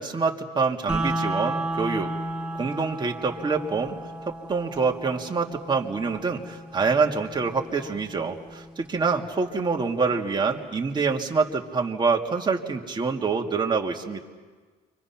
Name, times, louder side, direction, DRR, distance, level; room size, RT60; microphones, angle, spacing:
voice 1, 0.0-2.1 2.5-3.9 4.5-14.2, right 4 dB, 25° right, 1 dB, 2.2 m, -26 dB
sound 1, 0.9-10.9, right 2 dB, 10° right, 2.4 m, -34 dB
29.5 x 25.5 x 5.9 m, 1.4 s
cardioid pair, 110°, 17 cm